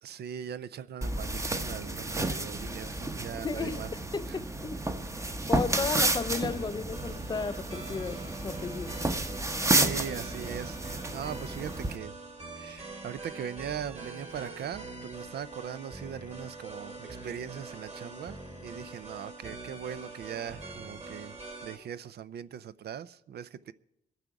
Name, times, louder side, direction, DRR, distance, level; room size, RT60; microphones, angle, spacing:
voice 1, 0.0-3.9 4.3-4.4 9.6-12.1 12.6-21.4 21.6-23.7, right 9 dB, 65° right, 0.5 m, -40 dB
sound 1, 1.0-12.0, right 2 dB, 15° right, 0.9 m, -31 dB
voice 2, 3.4-4.8 5.1-9.0, left 5 dB, 25° left, 0.5 m, -34 dB
sound 2, 5.8-21.8, right 3 dB, 40° right, 2.7 m, -44 dB
21.5 x 9.0 x 4.7 m
cardioid pair, 105°, 18 cm